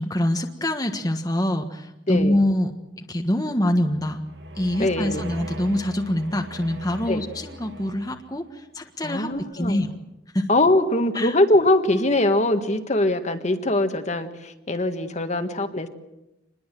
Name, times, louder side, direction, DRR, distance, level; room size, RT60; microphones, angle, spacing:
voice 1, 0.0-2.7 3.0-4.2 4.5-9.9 10.3-10.5 11.1-11.3, left 1 dB, 20° left, 3 dB, 1.5 m, -25 dB
voice 2, 2.1-2.4 4.8-5.3 7.1-7.2 9.0-9.8 10.5-15.9, left 1 dB, 40° left, 7 dB, 1.7 m, -22 dB
sound 1, 3.8-8.5, equal, 70° right, 2.0 m, -40 dB
26.5 x 21.0 x 7.7 m, 0.92 s
head